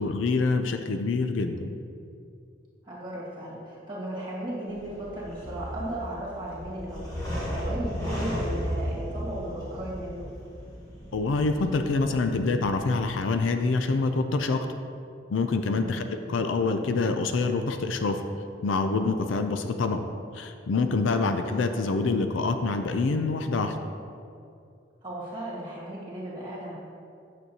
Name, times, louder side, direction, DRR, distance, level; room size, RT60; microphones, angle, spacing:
voice 1, 0.0-1.7 11.1-14.7 15.3-18.2 18.6-20.0 20.3-23.8, left 3 dB, 85° left, 7 dB, 0.4 m, -26 dB
voice 2, 2.8-7.1 7.5-10.2 15.7-16.0 21.3-21.4 25.0-26.8, right 1 dB, 25° right, -7 dB, 1.8 m, -36 dB
sound 1, 4.7-13.2, equal, 20° left, 1.2 m, -35 dB
9.1 x 6.2 x 2.8 m, 2.5 s
head